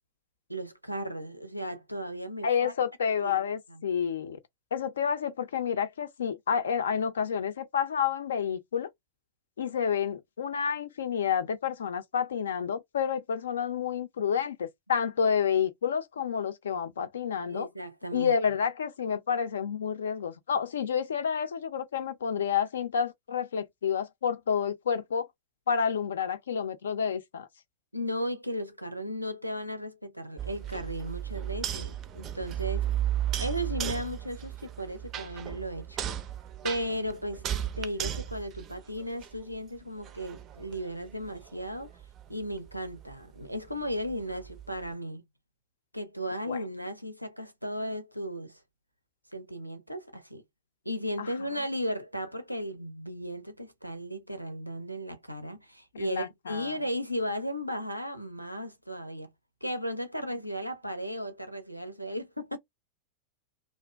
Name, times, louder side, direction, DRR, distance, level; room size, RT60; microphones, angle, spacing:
voice 1, 0.5-2.7 3.2-3.8 17.5-18.3 27.9-32.9 33.4-36.0 36.6-41.9 42.3-45.2 45.9-48.6 49.3-50.4 50.9-59.3 59.6-62.6, equal, 90° right, 0.5 m, -35 dB
voice 2, 2.4-4.4 4.7-8.9 9.6-17.7 18.1-25.3 25.7-27.5 46.5-46.6 51.2-51.3 55.9-56.7, left 7 dB, 65° left, 0.5 m, -29 dB
sound 1, 30.4-39.6 40.0-44.9, right 11 dB, 30° right, 0.4 m, -35 dB
2.5 x 2.2 x 3.2 m
figure-of-eight pair, 90°, 0 cm